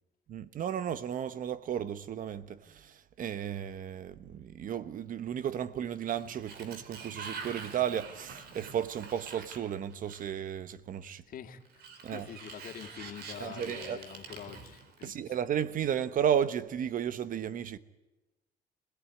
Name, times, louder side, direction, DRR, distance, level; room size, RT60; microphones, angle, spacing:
voice 1, 0.3-11.2 12.0-12.3 13.4-14.0 15.0-17.8, right 9 dB, 55° right, 1.2 m, -34 dB
Sliding door, 5.9-10.5 11.7-15.4, right 5 dB, 70° right, 4.1 m, -46 dB
voice 2, 11.2-15.2, left 9 dB, 55° left, 2.4 m, -46 dB
25.5 x 17.5 x 9.7 m
cardioid pair, 110°, 17 cm